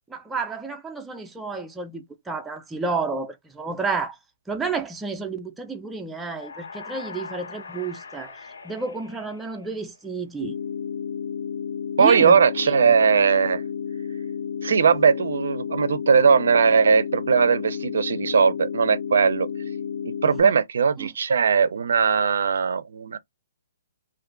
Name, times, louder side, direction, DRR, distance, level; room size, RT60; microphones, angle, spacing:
voice 1, 0.1-4.2 4.5-10.5 12.0-12.9 20.2-20.6 21.0-21.1, right 4 dB, 5° right, 0.3 m, -31 dB
sound 1, 6.2-10.1, left 5 dB, 90° left, 1.2 m, -41 dB
sound 2, 10.4-20.4, left 7 dB, 60° left, 0.6 m, -31 dB
voice 2, 12.0-13.6 14.6-19.5 20.0-23.2, right 6 dB, 70° right, 0.4 m, -19 dB
2.4 x 2.3 x 3.6 m
hypercardioid pair, 170°, 0 cm